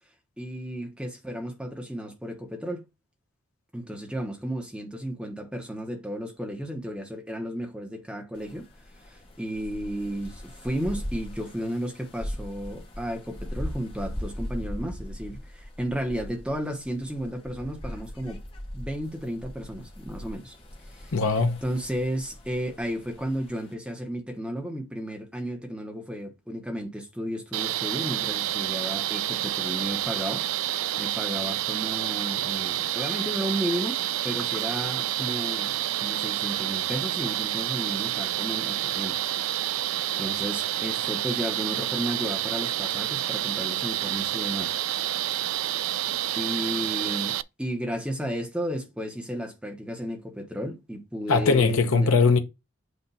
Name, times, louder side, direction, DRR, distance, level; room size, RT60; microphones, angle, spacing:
voice 1, 0.4-2.8 3.7-8.6 9.0-18.4 18.7-20.5 20.9-21.1 21.6-30.4 31.0-35.8 36.0-39.8 40.2-44.7 45.9-52.1, equal, 5° right, 1.2 m, -33 dB
sound 1, 8.4-23.7, equal, 25° left, 1.1 m, -39 dB
voice 2, 21.1-21.5 51.3-52.4, left 4 dB, 90° left, 0.9 m, -20 dB
sound 2, 27.5-47.4, right 13 dB, 80° right, 0.4 m, -29 dB
8.2 x 2.7 x 5.5 m
head